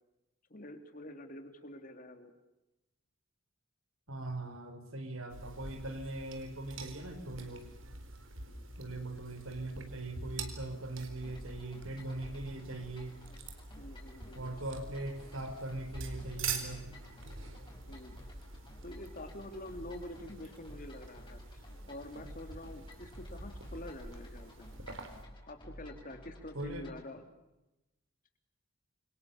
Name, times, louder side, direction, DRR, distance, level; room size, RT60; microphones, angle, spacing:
voice 1, 0.5-2.3 8.4-8.7 13.8-14.6 17.7-18.2 18.8-24.7 25.5-27.2, left 1 dB, 40° left, 7 dB, 3.2 m, -47 dB
voice 2, 4.1-7.7 8.8-13.2 14.3-17.0 26.5-27.0, right 2 dB, 80° right, 8 dB, 4.8 m, -41 dB
sound 1, 5.3-25.2, right 4 dB, 65° right, 4.0 m, -46 dB
sound 2, 11.2-27.1, equal, 25° left, 5.5 m, -52 dB
29.0 x 24.0 x 7.2 m, 0.94 s
head